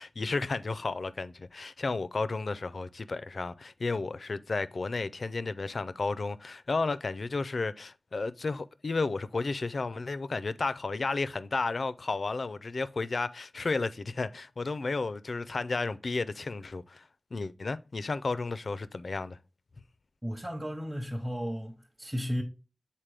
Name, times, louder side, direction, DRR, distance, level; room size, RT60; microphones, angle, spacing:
voice 1, 0.0-19.4, left 3 dB, 65° left, 0.4 m, -33 dB
voice 2, 20.2-22.4, equal, 15° right, 0.8 m, -34 dB
7.4 x 4.2 x 3.3 m
wide cardioid pair, 95°, 0 cm